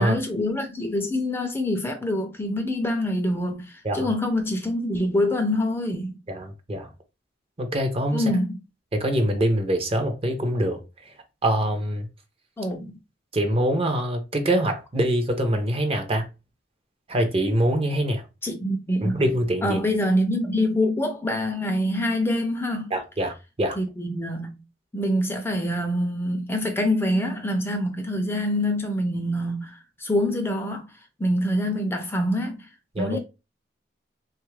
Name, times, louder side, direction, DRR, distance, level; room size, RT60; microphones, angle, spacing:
voice 1, 0.0-6.1 8.1-8.6 12.6-13.0 18.4-19.2 19.6-22.9 23.8-24.6 24.9-30.9 31.2-32.7 33.0-33.2, left 1 dB, 10° left, 0.4 m, -25 dB
voice 2, 6.3-6.9 7.6-8.2 8.9-10.8 11.4-12.1 13.3-16.3 17.1-18.2 19.0-19.8 22.9-23.8 32.9-33.2, right 1 dB, 30° right, 0.6 m, -24 dB
3.3 x 2.3 x 3.1 m
head